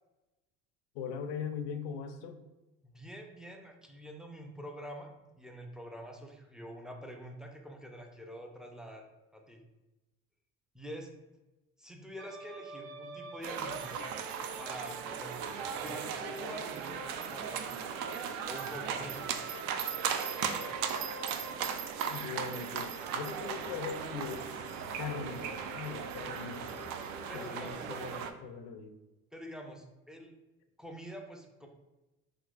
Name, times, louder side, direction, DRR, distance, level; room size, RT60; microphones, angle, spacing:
voice 1, 0.9-2.4 22.1-24.7 25.0-26.7 27.3-28.9, left 6 dB, 65° left, 8 dB, 0.5 m, -40 dB
voice 2, 2.8-9.0 9.3-9.6 10.7-11.1 11.8-14.0 14.6-17.0 17.3-18.0 18.5-19.4 27.1-27.9 29.3-30.3 30.8-31.7, equal, ahead, 3 dB, 0.4 m, -46 dB
sound 1, 12.2-17.7 17.9-28.2, right 1 dB, 35° right, 0.8 m, -48 dB
sound 2, 13.4-28.3, right 7 dB, 60° right, 0.5 m, -37 dB
3.7 x 2.7 x 2.4 m, 1.0 s
hypercardioid pair, 65°, 40 cm